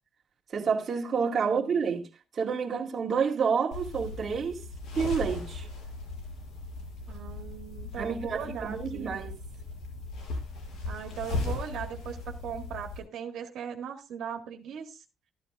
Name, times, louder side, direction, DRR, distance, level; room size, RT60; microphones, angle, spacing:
voice 1, 0.5-2.1 2.3-4.6 5.0-5.7 8.0-9.4, right 6 dB, 35° right, 1.9 m, -29 dB
voice 2, 1.4-1.8 7.1-9.1 10.8-15.0, right 8 dB, 70° right, 1.8 m, -39 dB
sound 1, 3.7-13.0, left 2 dB, 80° left, 6.3 m, -37 dB
13.0 x 12.5 x 2.4 m
cardioid pair, 145°, 0 cm